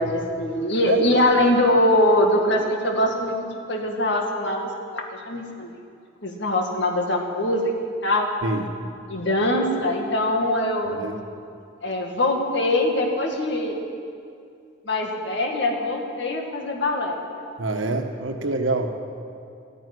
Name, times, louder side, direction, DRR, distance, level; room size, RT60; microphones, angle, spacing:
voice 1, 0.0-3.3 3.7-4.6 4.9-5.7 6.2-7.6 8.0-8.3 9.1-11.0 11.8-13.8 14.9-17.2, left 1 dB, 65° left, 1 dB, 2.1 m, -22 dB
voice 2, 10.9-11.2 17.6-18.9, right 2 dB, 85° right, 5 dB, 1.4 m, -26 dB
13.5 x 9.7 x 9.8 m, 2.4 s
head